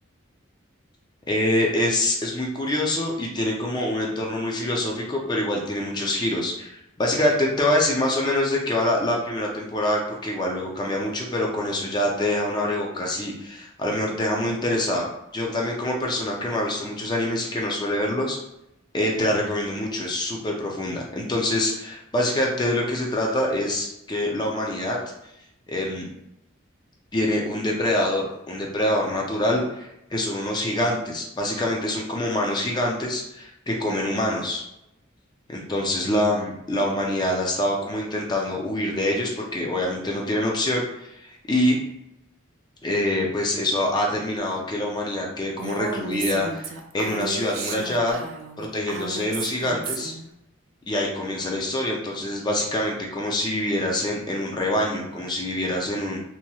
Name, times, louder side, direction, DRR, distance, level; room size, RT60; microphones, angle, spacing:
voice 1, 1.3-15.1 15.3-18.4 18.9-25.0 25.7-26.1 27.1-34.6 35.7-41.8 42.8-48.2 48.6-50.1 50.9-56.2, left 1 dB, 20° left, -1 dB, 0.4 m, -25 dB
Female speech woman speaking, 45.6-50.2, right 4 dB, 75° right, 0.4 m, -33 dB
2.9 x 2.8 x 2.2 m, 0.84 s
head